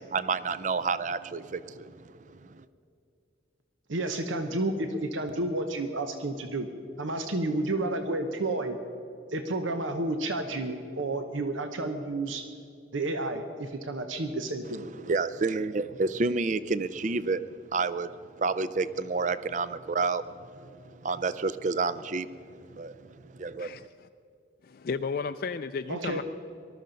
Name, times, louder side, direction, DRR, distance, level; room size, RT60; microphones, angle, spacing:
voice 1, 0.1-2.6 15.0-22.4 22.7-23.7, right 4 dB, 40° right, 15 dB, 0.4 m, -30 dB
voice 2, 3.9-6.7 7.0-8.8 9.3-12.4 12.9-14.9 25.9-26.2, right 2 dB, 85° right, 7 dB, 1.0 m, -31 dB
voice 3, 23.6-24.1 24.6-26.2, left 5 dB, 50° left, 9 dB, 0.3 m, -34 dB
19.5 x 13.0 x 5.2 m, 2.5 s
head